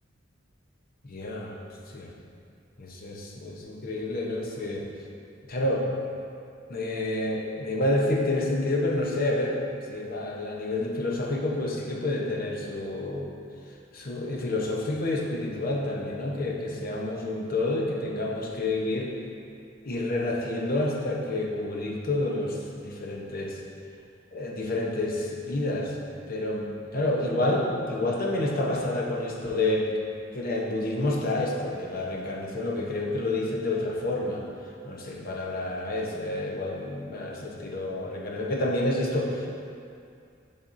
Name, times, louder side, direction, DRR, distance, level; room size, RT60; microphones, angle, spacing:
voice 1, 1.0-1.5 1.9-2.1 2.8-4.9 5.5-5.9 6.7-9.6 9.9-13.3 13.9-19.1 19.8-23.6 24.3-25.9 26.3-29.9 30.3-34.4 34.8-39.5, left 2 dB, 50° left, -1 dB, 0.8 m, -29 dB
10.0 x 4.1 x 2.6 m, 2.5 s
head